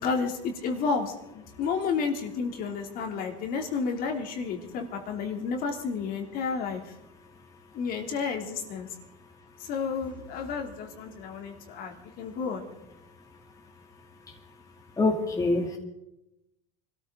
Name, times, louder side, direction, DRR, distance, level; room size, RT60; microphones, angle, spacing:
voice 1, 0.0-6.8 7.7-8.9 9.6-12.7, left 5 dB, 50° left, 3 dB, 2.9 m, -31 dB
voice 2, 15.0-15.8, left 3 dB, 20° left, 1 dB, 2.3 m, -25 dB
25.0 x 13.5 x 3.8 m, 0.88 s
supercardioid pair, 120°, 19 cm